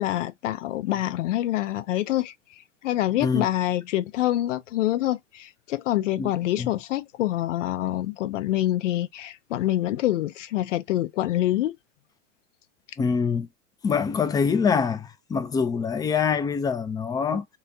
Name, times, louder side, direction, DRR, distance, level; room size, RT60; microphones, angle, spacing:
voice 1, 0.0-11.8, left 14 dB, 80° left, 0.6 m, -26 dB
voice 2, 13.0-13.5 13.8-17.4, left 6 dB, 10° left, 0.3 m, -24 dB
3.8 x 2.3 x 2.6 m
hypercardioid pair, 95°, 36 cm